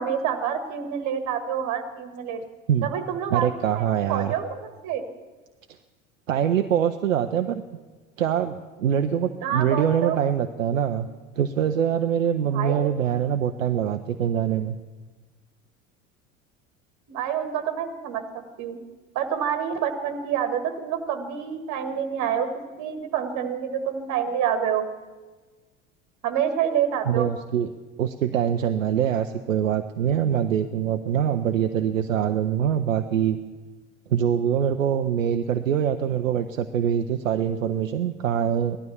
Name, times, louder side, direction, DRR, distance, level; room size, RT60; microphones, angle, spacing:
voice 1, 0.0-2.4 2.8-3.5 3.8-5.0 9.4-10.2 12.4-12.9 17.1-18.8 19.2-22.5 22.8-24.9 26.2-27.3, right 8 dB, 45° right, 8 dB, 1.7 m, -27 dB
voice 2, 3.3-4.3 6.3-7.6 8.2-11.1 11.4-14.8 27.1-27.7 28.0-33.4 34.1-38.8, right 9 dB, 80° right, 8 dB, 0.7 m, -24 dB
16.0 x 12.0 x 7.1 m, 1.3 s
figure-of-eight pair, 70°, 39 cm